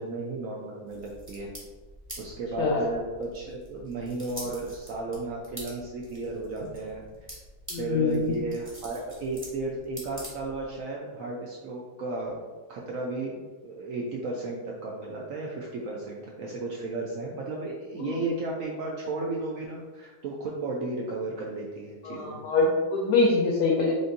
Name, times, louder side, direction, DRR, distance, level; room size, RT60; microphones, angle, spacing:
voice 1, 0.0-1.5 2.2-7.3 7.8-22.4, right 2 dB, 80° right, -3 dB, 0.7 m, -34 dB
sound 1, 0.9-10.8, equal, 15° right, 0.5 m, -46 dB
voice 2, 7.7-8.3 18.0-18.2 22.0-23.9, left 3 dB, 70° left, -3 dB, 1.1 m, -24 dB
5.1 x 2.5 x 2.6 m, 1.3 s
omnidirectional pair, 1.9 m